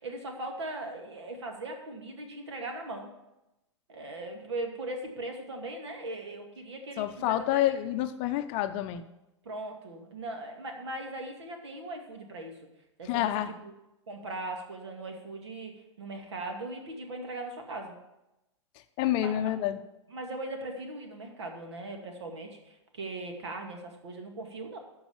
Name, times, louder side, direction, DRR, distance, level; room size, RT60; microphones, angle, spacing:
voice 1, 0.0-3.1 3.9-7.6 9.4-12.6 13.0-13.3 13.6-13.7 14.1-17.9 19.2-19.5 20.1-24.8, right 2 dB, 65° right, 3 dB, 2.2 m, -39 dB
voice 2, 7.0-9.1 13.1-13.5 19.0-19.8, left 12 dB, 35° left, 9 dB, 0.7 m, -28 dB
13.0 x 4.8 x 7.2 m, 0.93 s
figure-of-eight pair, 105°, 15 cm